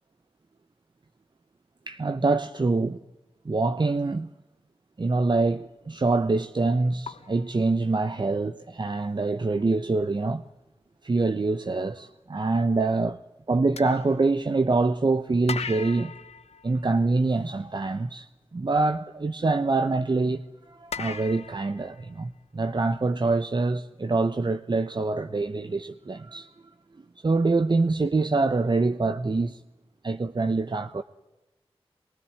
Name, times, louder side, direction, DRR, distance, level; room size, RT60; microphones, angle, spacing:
voice 1, 1.9-3.0 3.4-4.3 5.0-10.4 11.0-13.2 13.5-16.1 16.6-26.5 27.2-29.6 30.0-31.0, right 3 dB, 45° right, 1.0 m, -25 dB
sound 1, 7.1-8.4 9.6-9.7 10.1-10.4 13.8-14.9 15.5-17.6 20.9-22.7, left 6 dB, 90° left, 1.2 m, -39 dB
23.5 x 22.5 x 9.7 m
cardioid pair, 45°, 11 cm